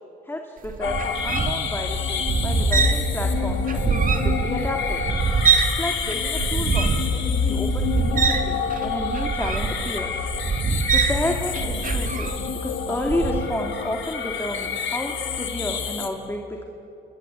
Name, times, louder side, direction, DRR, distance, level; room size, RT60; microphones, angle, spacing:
voice 1, 0.3-5.0 5.7-10.3 10.9-16.6, left 1 dB, 10° left, 2 dB, 2.4 m, -31 dB
sound 1, 0.6-5.8 6.1-12.6 13.0-13.4, right 5 dB, 45° right, 2.5 m, -24 dB
sound 2, 0.8-16.1, left 6 dB, 70° left, 2.7 m, -28 dB
28.5 x 22.0 x 8.2 m, 2.9 s
cardioid pair, 90°, 20 cm